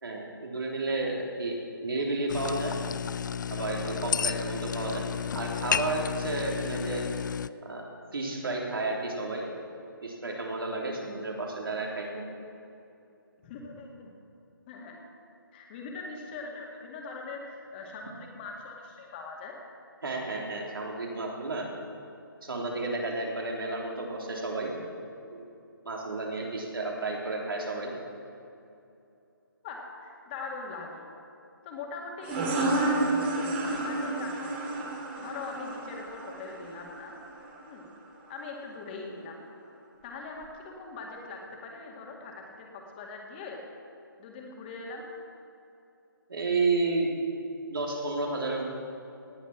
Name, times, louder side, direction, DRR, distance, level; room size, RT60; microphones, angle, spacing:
voice 1, 0.0-1.6 1.8-2.7 3.5-5.0 5.3-7.0 7.6-7.9 8.1-9.4 10.0-12.2 20.0-21.7 22.4-24.7 25.3-25.4 25.8-27.9 46.3-47.1 47.7-48.6, right 3 dB, 75° right, -1 dB, 3.3 m, -31 dB
sound 1, 2.3-7.5, left 7 dB, 55° left, 0.4 m, -32 dB
voice 2, 13.4-14.1 14.7-15.0 15.5-19.5 29.6-31.1 31.6-34.8 35.2-37.2 37.6-37.9 38.3-39.4 40.0-43.6 44.2-45.0, left 3 dB, 25° left, 0 dB, 2.0 m, -41 dB
sound 2, 32.2-37.6, right 2 dB, 30° right, 2.3 m, -30 dB
18.5 x 8.6 x 6.0 m, 2.7 s
figure-of-eight pair, 155°, 12 cm